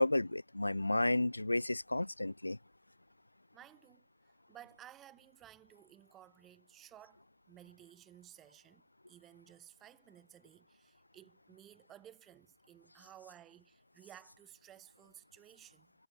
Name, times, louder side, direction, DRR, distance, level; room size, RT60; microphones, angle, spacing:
voice 1, 0.0-2.6, left 2 dB, 85° left, 0.4 m, -31 dB
voice 2, 3.5-4.1 4.5-15.9, right 11 dB, 30° right, 2.6 m, -57 dB
figure-of-eight pair, 90°, 0 cm